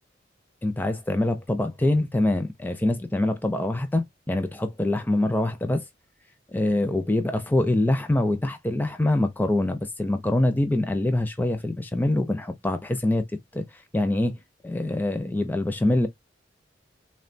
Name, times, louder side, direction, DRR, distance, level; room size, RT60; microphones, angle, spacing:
voice 1, 0.6-5.8 6.5-13.3 13.5-13.6 13.9-14.4 14.6-16.1, left 1 dB, 10° left, 0.4 m, -24 dB
3.4 x 2.2 x 2.4 m
head